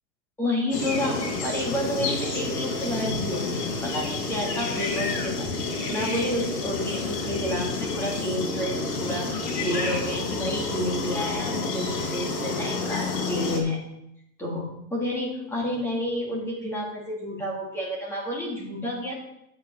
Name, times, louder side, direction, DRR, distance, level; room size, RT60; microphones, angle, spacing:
voice 1, 0.4-5.5 5.9-9.3 9.6-13.8 14.4-19.2, left 1 dB, 5° left, -4 dB, 1.7 m, -30 dB
sound 1, 0.7-13.6, left 3 dB, 75° left, 3.5 m, -29 dB
9.1 x 7.5 x 5.4 m, 0.80 s
supercardioid pair, 175°, 50 cm